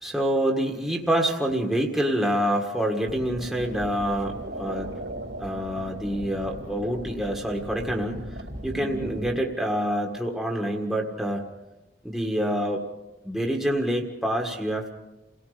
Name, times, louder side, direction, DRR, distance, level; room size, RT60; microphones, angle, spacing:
voice 1, 0.0-4.9 5.4-11.4 12.0-12.8 13.2-14.9, equal, ahead, 0 dB, 1.8 m, -27 dB
sound 1, 3.1-9.4, right 1 dB, 80° right, 3.4 m, -37 dB
28.5 x 18.0 x 5.1 m, 0.97 s
head